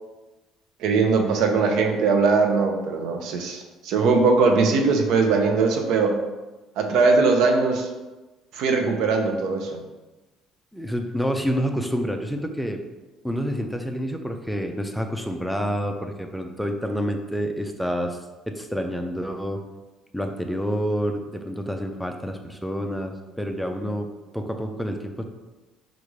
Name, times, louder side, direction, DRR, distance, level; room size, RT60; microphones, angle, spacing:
voice 1, 0.8-6.2 6.8-7.9 8.5-9.8, right 4 dB, 70° right, 4 dB, 0.6 m, -20 dB
voice 2, 10.7-12.8 13.2-18.2 18.5-19.6 20.1-24.1 24.3-25.2, equal, ahead, 4 dB, 0.4 m, -28 dB
5.0 x 2.4 x 3.1 m, 1.1 s
cardioid pair, 125°, 0 cm